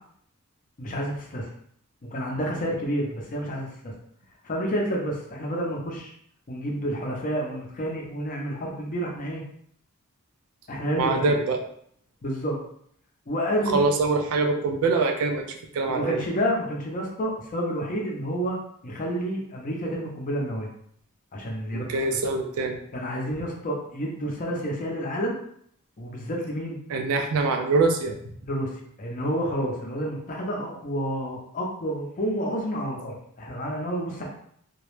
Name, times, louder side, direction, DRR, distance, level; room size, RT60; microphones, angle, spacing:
voice 1, 0.8-1.5 2.1-3.9 4.4-6.1 6.5-9.4 10.7-11.4 12.2-12.6 13.3-13.8 15.8-18.6 18.8-20.7 21.3-21.9 22.9-25.4 26.0-26.8 28.5-34.3, equal, 40° left, -1 dB, 0.5 m, -29 dB
voice 2, 11.0-11.6 13.7-16.2 21.7-22.8 26.9-28.2, right 3 dB, 75° right, 5 dB, 0.3 m, -24 dB
2.2 x 2.0 x 3.0 m, 0.66 s
head